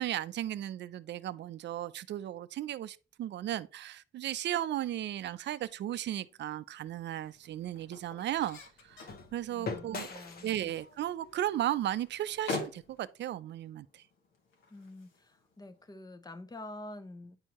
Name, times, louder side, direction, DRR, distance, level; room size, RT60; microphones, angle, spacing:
voice 1, 0.0-8.6 8.9-9.0 9.3-10.1 10.4-13.9, right 12 dB, 65° right, 0.5 m, -35 dB
sound 1, 5.6-15.9, left 3 dB, 75° left, 1.9 m, -47 dB
sound 2, 6.9-13.0, left 4 dB, 50° left, 1.3 m, -46 dB
voice 2, 9.5-10.8 14.7-17.4, left 2 dB, 20° left, 0.8 m, -47 dB
9.5 x 4.5 x 3.0 m
cardioid pair, 90°, 20 cm